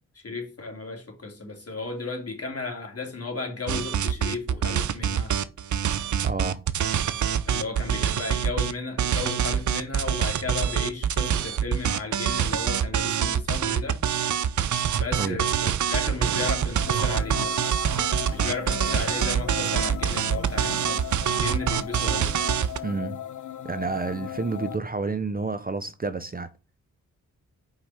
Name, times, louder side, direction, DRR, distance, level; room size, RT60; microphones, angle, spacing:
voice 1, 0.1-5.3 7.5-14.0 14.9-17.6 18.3-22.3, left 3 dB, 45° left, 2.9 m, -34 dB
sound 1, 3.7-8.7 9.0-22.8, right 8 dB, 65° right, 0.6 m, -25 dB
voice 2, 6.2-6.6 15.1-15.4 22.8-23.2 23.6-26.5, right 4 dB, 30° right, 0.7 m, -30 dB
sound 2, 16.8-24.8, left 11 dB, 65° left, 0.7 m, -38 dB
5.6 x 5.2 x 5.9 m
cardioid pair, 55°, 32 cm